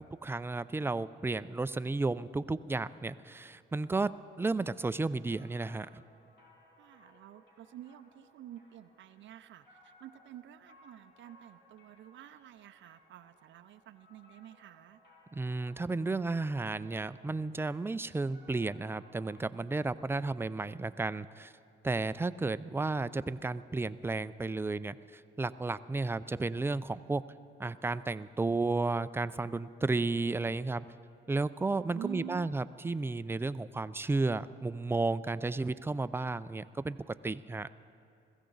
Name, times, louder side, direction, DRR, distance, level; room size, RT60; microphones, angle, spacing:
voice 1, 0.2-4.1 4.4-6.0 15.3-21.5 21.8-27.2 27.6-30.9 31.3-37.7, right 3 dB, 10° right, 14 dB, 0.4 m, -33 dB
sound 1, 4.7-19.4, left 1 dB, 60° left, 3.7 m, -63 dB
voice 2, 6.8-15.0 31.9-32.5, right 11 dB, 70° right, 11 dB, 0.5 m, -48 dB
21.5 x 15.0 x 3.9 m, 2.4 s
cardioid pair, 90°, 20 cm